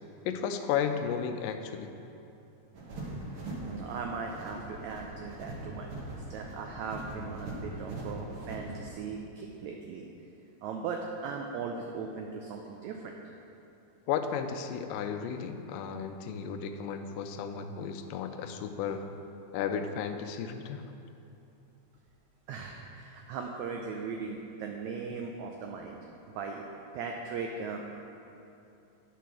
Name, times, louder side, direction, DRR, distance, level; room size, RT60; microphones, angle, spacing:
voice 1, 0.2-1.9 14.1-19.0 19.5-20.9, left 7 dB, 90° left, 7 dB, 2.2 m, -34 dB
sound 1, 2.7-8.9, right 1 dB, 60° right, 1.4 m, -41 dB
voice 2, 3.6-10.0 10.6-13.1 22.5-26.0 26.3-26.6 26.9-28.0, right 5 dB, 85° right, 2 dB, 1.6 m, -38 dB
9.1 x 4.7 x 5.9 m, 2.8 s
omnidirectional pair, 3.8 m